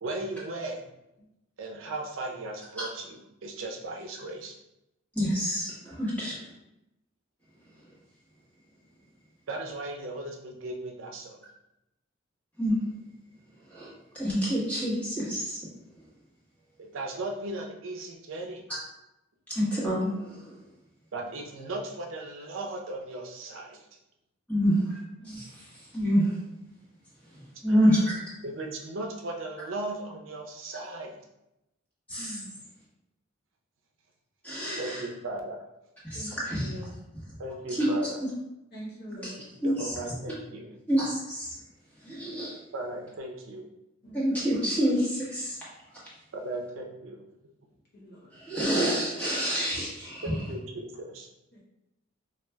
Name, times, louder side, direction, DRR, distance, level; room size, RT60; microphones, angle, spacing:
voice 1, 0.0-0.8 1.6-4.5 9.5-11.4 16.8-18.6 21.1-23.8 27.7-27.8 28.4-31.2 34.8-35.6 37.4-38.2 39.6-40.7 42.7-43.6 46.3-47.2 50.2-51.3, right 2 dB, 85° right, 2 dB, 0.5 m, -37 dB
voice 2, 5.1-6.4 12.6-12.8 13.7-13.9 14.2-15.6 19.5-20.4 24.5-24.7 25.3-25.5 25.9-26.3 27.6-28.1 32.1-32.4 34.4-35.0 36.1-36.7 37.8-37.9 39.2-39.3 39.6-40.0 40.9-41.5 42.0-42.6 44.1-45.6 48.3-50.3, equal, 10° left, -8 dB, 1.2 m, -27 dB
voice 3, 32.2-32.5 36.1-36.9 38.7-39.4 44.0-44.2 44.6-44.8 47.9-48.3 51.5-51.6, equal, 55° left, -6 dB, 1.2 m, -43 dB
4.6 x 2.3 x 2.2 m, 0.88 s
head